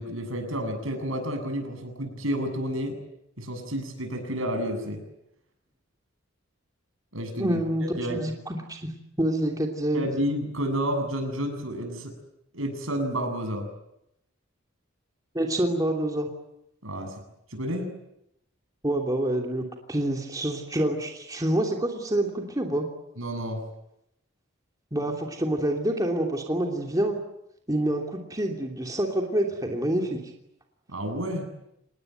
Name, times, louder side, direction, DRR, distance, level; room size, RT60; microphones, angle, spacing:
voice 1, 0.0-2.9 3.4-5.0 7.1-7.6 8.0-8.2 9.9-12.1 12.5-13.7 16.8-17.2 17.5-17.9 23.2-23.6 30.9-31.5, equal, 75° right, 6 dB, 7.6 m, -30 dB
voice 2, 7.4-8.9 9.2-10.0 15.3-16.3 18.8-22.9 24.9-27.2 27.7-30.2, right 1 dB, 15° right, 1 dB, 3.0 m, -27 dB
27.5 x 20.0 x 9.3 m, 0.83 s
head